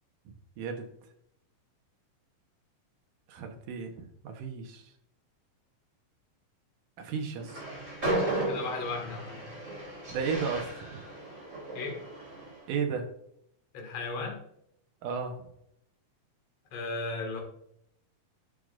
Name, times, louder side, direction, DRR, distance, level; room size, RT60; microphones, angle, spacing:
voice 1, 0.6-0.9 3.3-4.8 7.0-7.6 10.1-11.0 12.7-13.1 15.0-15.4, right 5 dB, 70° right, 4 dB, 2.4 m, -34 dB
Train, 7.4-12.7, right 1 dB, 20° right, 3.2 m, -35 dB
voice 2, 8.5-9.5 11.7-12.0 13.7-14.4 16.7-17.4, left 3 dB, 50° left, 1 dB, 2.4 m, -35 dB
9.8 x 6.7 x 2.5 m, 0.73 s
omnidirectional pair, 4.3 m